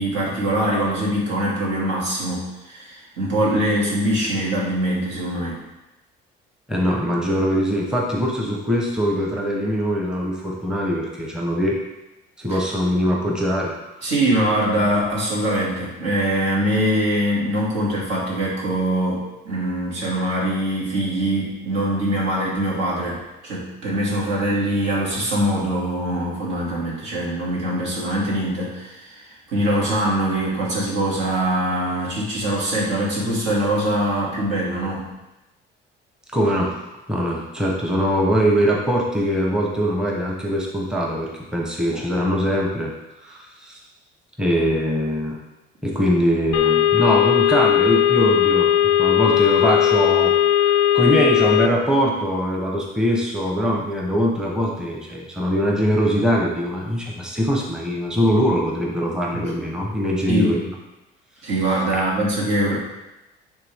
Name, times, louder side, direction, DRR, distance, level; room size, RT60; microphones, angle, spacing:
voice 1, 0.0-5.6 14.0-35.0 41.9-42.0 59.3-59.5 60.3-60.5 61.4-62.8, right 1 dB, 75° right, -5 dB, 2.4 m, -23 dB
voice 2, 6.7-11.8 12.4-13.7 14.0-14.1 36.3-36.7 37.1-42.9 43.2-43.8 44.4-45.4 45.8-48.7 49.0-50.3 50.6-60.7 61.9-62.0, equal, 5° right, -2 dB, 0.9 m, -22 dB
sound 1, 46.5-51.7, left 11 dB, 90° left, 0.5 m, -17 dB
9.2 x 3.6 x 3.5 m, 0.97 s
cardioid pair, 125°, 19 cm